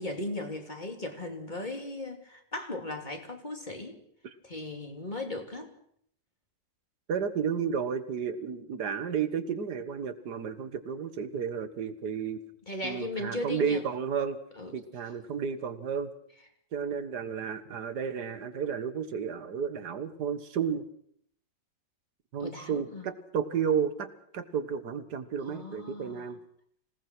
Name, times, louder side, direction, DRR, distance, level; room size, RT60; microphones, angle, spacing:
voice 1, 0.0-4.0 4.4-5.7 12.7-13.8 14.6-14.7 22.4-23.1 25.5-26.3, left 2 dB, 25° left, 3 dB, 3.0 m, -37 dB
voice 2, 7.1-12.4 12.8-14.4 14.7-16.1 16.7-20.8 22.3-26.4, right 7 dB, 65° right, 11 dB, 1.9 m, -32 dB
26.5 x 18.5 x 6.1 m, 0.66 s
omnidirectional pair, 2.0 m